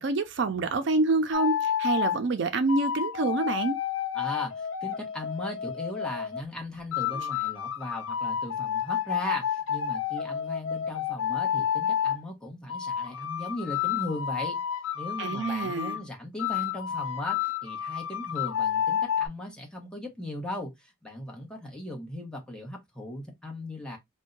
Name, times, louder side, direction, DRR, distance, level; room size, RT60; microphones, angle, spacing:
voice 1, 0.0-3.8 7.1-7.3 15.2-16.0, right 3 dB, 65° right, 0.4 m, -27 dB
sound 1, 1.3-2.2 2.7-6.4 6.9-12.2 12.7-16.0 16.4-19.3, left 9 dB, 80° left, 0.5 m, -30 dB
voice 2, 4.1-14.6 14.9-24.0, left 1 dB, 5° left, 1.0 m, -38 dB
2.6 x 2.2 x 3.7 m
head